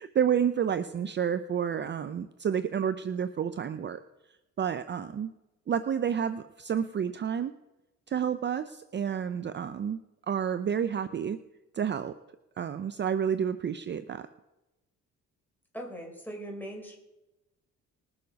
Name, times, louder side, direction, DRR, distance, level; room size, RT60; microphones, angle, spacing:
voice 1, 0.0-4.0 4.6-5.3 5.7-7.5 8.1-10.0 10.3-11.4 11.7-12.1 12.6-14.3, right 8 dB, 35° right, 12 dB, 0.5 m, -30 dB
voice 2, 15.7-17.0, right 1 dB, 5° left, 0 dB, 3.9 m, -40 dB
20.0 x 6.9 x 5.2 m, 0.99 s
cardioid pair, 90°, 30 cm